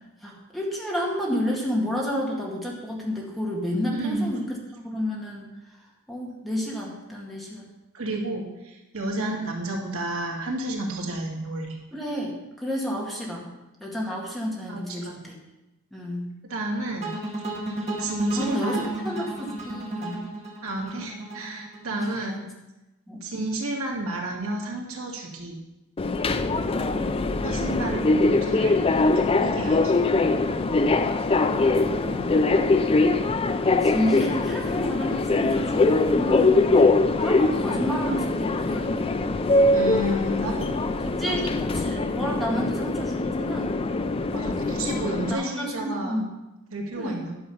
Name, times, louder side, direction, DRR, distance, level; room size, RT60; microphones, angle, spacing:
voice 1, 0.2-5.5 6.1-7.6 9.2-9.5 11.9-13.5 13.8-15.3 15.9-16.3 18.4-20.2 21.9-22.5 23.1-23.2 26.7-27.1 31.4-32.5 33.8-36.8 37.2-39.1 41.0-43.7 45.3-46.3 47.0-47.2, equal, ahead, -3 dB, 2.0 m, -30 dB
voice 2, 3.9-4.3 7.9-11.8 14.7-15.2 16.4-17.1 18.0-18.9 20.6-22.4 23.2-25.6 27.4-28.8 29.2-29.9 39.7-40.7 41.3-41.4 42.4-42.6 44.3-46.2 46.7-47.3, right 1 dB, 85° right, 0 dB, 2.1 m, -31 dB
sound 1, 17.0-22.1, right 1 dB, 30° right, 2.2 m, -33 dB
Subway metro underground, 26.0-45.3, left 3 dB, 25° left, 0.5 m, -22 dB
11.5 x 6.8 x 5.5 m, 1.0 s
head